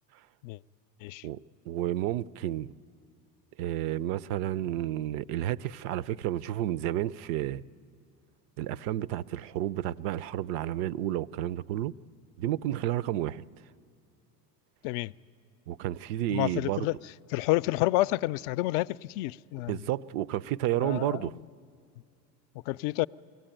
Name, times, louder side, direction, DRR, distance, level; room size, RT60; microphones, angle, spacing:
voice 1, 1.7-2.7 3.6-7.6 8.6-11.9 12.4-13.4 15.7-16.9 19.7-21.4, right 13 dB, 65° right, 0.6 m, -31 dB
voice 2, 16.3-16.9 17.3-19.8 20.8-21.3 22.7-23.1, left 18 dB, 65° left, 0.5 m, -29 dB
23.0 x 17.0 x 8.9 m
hypercardioid pair, 80°, 49 cm